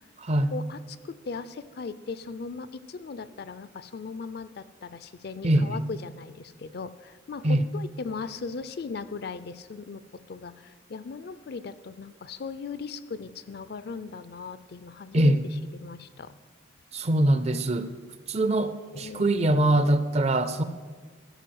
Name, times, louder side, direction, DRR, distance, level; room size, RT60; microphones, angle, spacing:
voice 1, 0.2-0.6 5.4-5.8 7.4-7.6 15.1-15.5 16.9-17.9 18.3-20.6, right 1 dB, 35° right, 0.5 m, -23 dB
voice 2, 1.0-15.3 15.7-16.3 18.3-19.7, left 4 dB, 55° left, 0.4 m, -38 dB
13.0 x 4.8 x 7.8 m
head